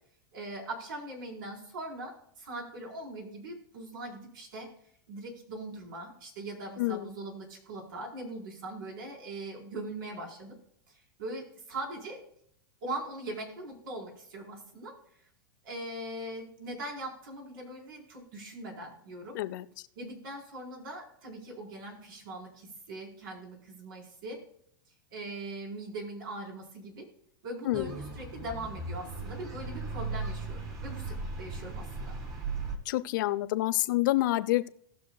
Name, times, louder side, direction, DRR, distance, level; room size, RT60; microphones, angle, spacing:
voice 1, 0.3-4.7 5.1-10.6 10.9-12.2 12.8-15.0 15.6-19.4 20.0-24.4 25.1-27.1 27.4-32.2, right 2 dB, 80° right, -1 dB, 4.3 m, -41 dB
voice 2, 6.8-7.1 19.3-19.7 27.6-27.9 32.9-34.7, left 17 dB, 65° left, 12 dB, 0.7 m, -28 dB
sound 1, 27.7-32.8, right 3 dB, 30° right, 2.0 m, -37 dB
18.5 x 6.5 x 2.3 m, 0.68 s
supercardioid pair, 135°, 11 cm